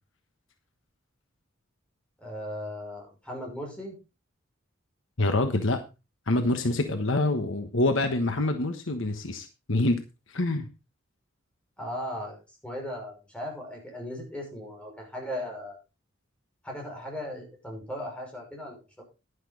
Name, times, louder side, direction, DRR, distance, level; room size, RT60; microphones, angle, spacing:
voice 1, 2.2-4.0 11.8-15.8 16.6-19.0, equal, 5° left, 0 dB, 5.8 m, -37 dB
voice 2, 5.2-5.8 6.3-10.0 10.3-10.7, left 2 dB, 70° left, 7 dB, 1.3 m, -26 dB
11.0 x 11.0 x 4.0 m, 0.29 s
head